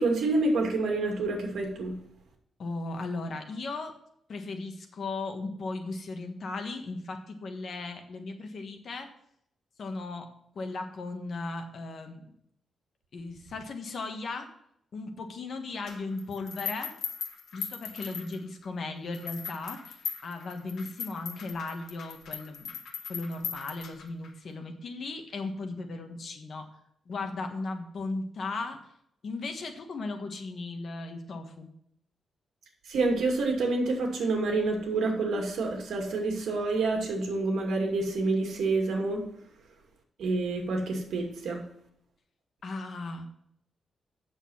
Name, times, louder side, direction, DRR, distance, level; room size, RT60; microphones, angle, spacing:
voice 1, 0.0-2.0 32.9-39.2 40.2-41.6, right 3 dB, 70° right, 2 dB, 2.4 m, -28 dB
voice 2, 2.6-3.9 4.3-9.1 9.8-10.3 10.5-12.3 13.1-14.5 14.9-16.9 17.5-22.7 23.1-26.7 27.1-28.8 29.2-31.7 42.6-43.3, left 3 dB, 45° left, 5 dB, 1.4 m, -36 dB
sound 1, 15.9-18.7 19.1-24.3, left 6 dB, 80° left, 1.6 m, -39 dB
8.5 x 7.1 x 5.7 m, 0.72 s
wide cardioid pair, 175°, 0 cm